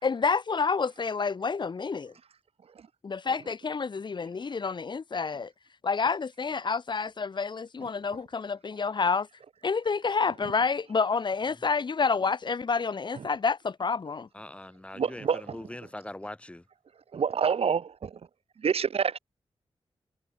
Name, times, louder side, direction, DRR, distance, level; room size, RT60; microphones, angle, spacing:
voice 1, 0.0-2.1 3.0-5.5 5.8-9.3 9.6-14.3, left 5 dB, 50° left, 3.1 m, -28 dB
voice 2, 14.3-16.6, left 1 dB, 10° left, 4.2 m, -42 dB
voice 3, 14.9-15.6 17.1-18.1 18.6-19.2, right 6 dB, 75° right, 1.6 m, -27 dB
wide cardioid pair, 175°, 10 cm